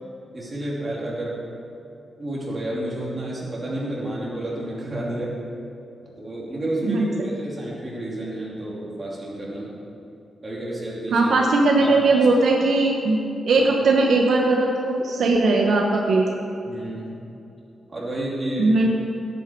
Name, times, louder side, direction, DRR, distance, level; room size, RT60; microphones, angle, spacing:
voice 1, 0.3-1.3 2.2-5.3 6.2-9.7 10.4-11.3 11.8-11.9 12.1-12.3 13.5-13.7 16.7-17.2 17.9-18.7, right 1 dB, 20° right, -6 dB, 2.8 m, -30 dB
voice 2, 11.1-13.2 13.4-16.3 18.6-18.9, right 3 dB, 65° right, 0 dB, 1.0 m, -19 dB
17.0 x 8.2 x 4.6 m, 2.7 s
wide cardioid pair, 175°, 0 cm